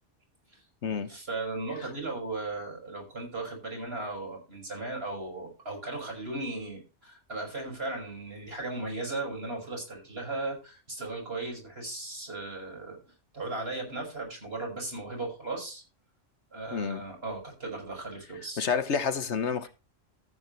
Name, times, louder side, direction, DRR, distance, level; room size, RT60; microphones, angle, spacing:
voice 1, 1.1-15.8 16.5-18.6, right 2 dB, 55° right, 5.8 m, -37 dB
voice 2, 16.7-17.0 18.6-19.7, left 6 dB, 65° left, 1.3 m, -29 dB
13.5 x 9.4 x 3.1 m
omnidirectional pair, 1.2 m